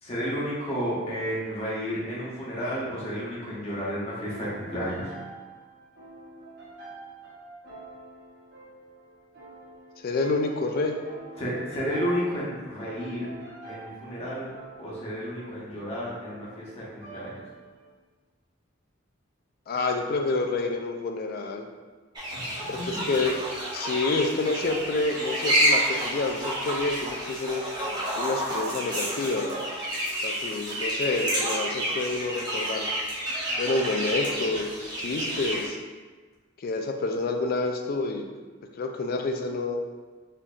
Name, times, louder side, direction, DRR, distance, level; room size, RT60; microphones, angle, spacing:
voice 1, 0.0-5.1 11.4-13.3 13.6-14.5 14.8-17.3 22.3-22.6 22.9-23.0, equal, 30° left, -7 dB, 0.9 m, -32 dB
sound 1, 4.2-17.9, right 2 dB, 65° right, 1.1 m, -46 dB
voice 2, 10.0-11.0 19.7-21.7 22.7-23.4 23.7-27.6 28.2-29.5 30.2-32.9 33.6-35.8 36.6-38.3 38.7-39.8, left 3 dB, 50° left, 4 dB, 0.3 m, -28 dB
sound 2, 22.2-35.7, right 1 dB, 20° right, 0.7 m, -29 dB
4.3 x 2.6 x 2.4 m, 1.3 s
head